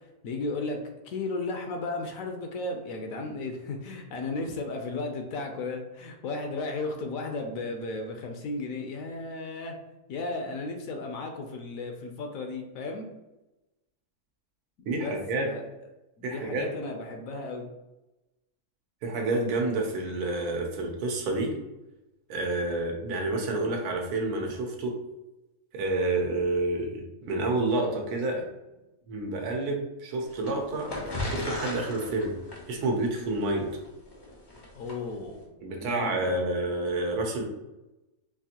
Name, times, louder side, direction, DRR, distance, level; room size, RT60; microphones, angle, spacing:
voice 1, 0.2-9.7 10.1-13.1 14.9-15.6 16.2-17.7 34.7-35.5 35.8-36.4, left 3 dB, 70° left, 3 dB, 0.9 m, -34 dB
voice 2, 14.9-15.5 16.2-16.7 19.0-21.5 22.3-24.9 25.7-28.4 29.1-30.9 31.2-32.3 32.7-33.7 35.6-37.4, right 2 dB, 80° right, 1 dB, 1.3 m, -29 dB
sound 1, 30.3-35.0, left 1 dB, 35° left, 0.3 m, -36 dB
4.6 x 2.5 x 2.8 m, 1.0 s
omnidirectional pair, 1.6 m